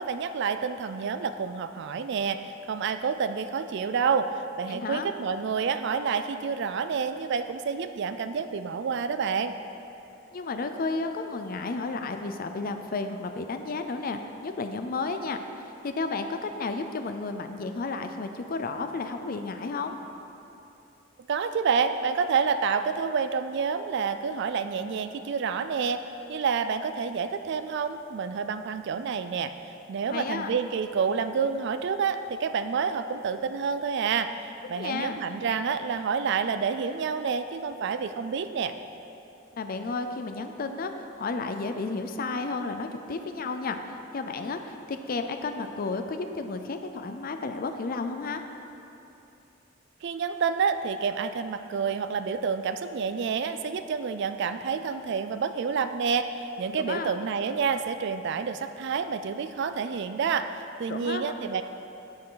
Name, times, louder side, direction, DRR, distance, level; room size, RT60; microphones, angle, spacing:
voice 1, 0.0-4.3 4.6-9.5 21.3-26.0 26.3-29.5 29.9-38.7 50.0-60.5 60.8-61.6, right 6 dB, 60° right, 10 dB, 0.4 m, -28 dB
voice 2, 4.7-5.1 10.3-15.4 15.8-20.0 30.1-30.5 34.7-35.2 39.5-48.4 56.7-57.1 60.9-61.4, left 3 dB, 45° left, 7 dB, 0.5 m, -32 dB
9.5 x 8.9 x 3.9 m, 2.9 s
head